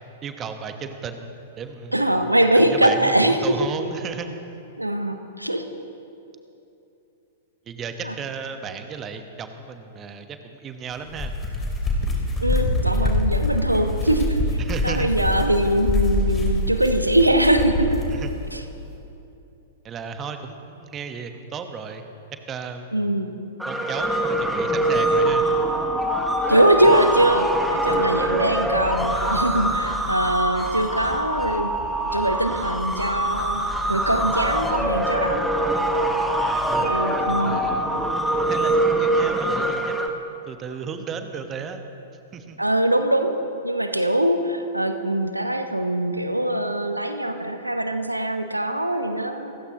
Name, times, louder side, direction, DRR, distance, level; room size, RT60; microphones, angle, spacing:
voice 1, 0.2-2.2 2.5-4.3 7.7-11.3 14.6-15.1 18.1-18.3 19.8-22.0 22.5-23.0 23.6-25.4 36.4-37.8 38.4-41.8 42.3-42.6, right 6 dB, 25° right, 7 dB, 1.2 m, -34 dB
voice 2, 1.9-3.4 4.8-5.7 8.0-8.1 12.4-14.4 14.8-18.0 18.5-18.6 22.9-23.3 26.5-31.7 32.1-35.5 36.8-37.6 37.9-38.0 42.6-43.4 43.6-49.5, right 1 dB, 90° right, 8 dB, 1.0 m, -22 dB
sound 1, 11.0-18.2, left 2 dB, 15° left, 3.6 m, -24 dB
sound 2, 23.6-40.1, right 1 dB, ahead, 1.3 m, -23 dB
29.0 x 15.5 x 3.0 m, 2.9 s
figure-of-eight pair, 105°, 0 cm